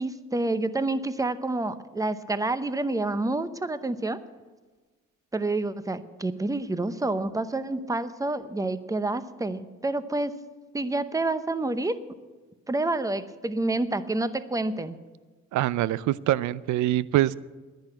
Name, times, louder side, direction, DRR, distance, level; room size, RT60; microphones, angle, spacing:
voice 1, 0.0-4.2 5.3-10.4 10.7-12.0 12.7-15.0, right 2 dB, 10° right, 12 dB, 0.8 m, -28 dB
voice 2, 15.5-17.3, right 14 dB, 75° right, 19 dB, 0.5 m, -24 dB
10.5 x 10.0 x 9.0 m, 1.3 s
cardioid pair, 90°, 30 cm